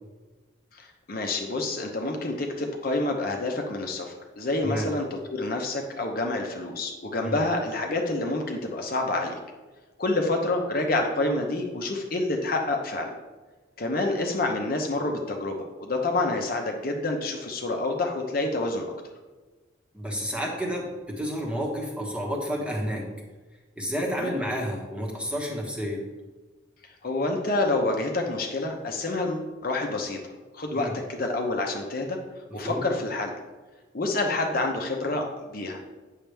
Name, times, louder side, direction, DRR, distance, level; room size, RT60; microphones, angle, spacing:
voice 1, 0.7-9.4 10.0-13.2 13.8-18.9 24.1-24.3 27.0-30.2 30.5-32.2 32.5-33.3 33.9-35.8, left 2 dB, 45° left, 2 dB, 0.9 m, -28 dB
voice 2, 19.9-23.1 23.8-26.0 30.7-31.0 32.6-32.9, equal, 5° right, -2 dB, 1.3 m, -30 dB
9.0 x 6.6 x 3.4 m, 1.3 s
head